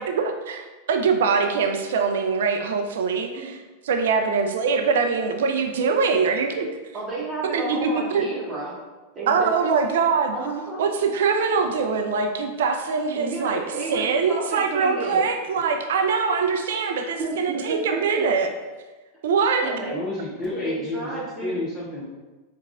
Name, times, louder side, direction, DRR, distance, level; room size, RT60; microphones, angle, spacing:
voice 1, 0.0-6.8 7.5-8.3 9.3-10.4 10.8-13.6 13.9-18.5 19.2-19.7, right 5 dB, 70° right, 5 dB, 0.3 m, -23 dB
voice 2, 6.9-8.7 9.1-9.8 10.3-10.8 13.1-15.2 17.2-18.2 19.4-20.0 20.6-21.6, right 3 dB, 30° right, -8 dB, 0.9 m, -31 dB
voice 3, 19.9-21.1 21.4-22.0, left 2 dB, 30° left, -7 dB, 0.8 m, -30 dB
4.6 x 2.3 x 2.5 m, 1.2 s
hypercardioid pair, 95°, 0 cm